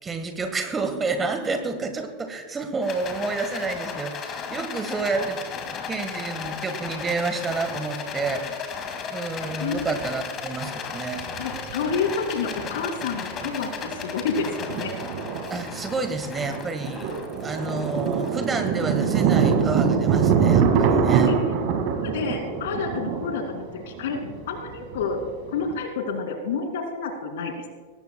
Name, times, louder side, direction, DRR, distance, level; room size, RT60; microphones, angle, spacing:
voice 1, 0.0-5.4 5.9-8.8 9.1-11.2 15.5-17.1 17.4-21.3, right 3 dB, 15° right, 7 dB, 1.5 m, -29 dB
Rattle, 2.8-20.2, left 6 dB, 30° left, 2.1 m, -35 dB
Thunder, 9.7-9.8 11.2-12.0 12.2-12.3 12.8-13.0 13.4-25.8, right 6 dB, 45° right, 1.9 m, -24 dB
voice 2, 11.4-14.9 21.2-21.5 22.0-25.2 25.5-27.7, left 5 dB, 55° left, 4 dB, 2.4 m, -29 dB
22.5 x 18.5 x 2.3 m, 1.4 s
figure-of-eight pair, 90°, 0 cm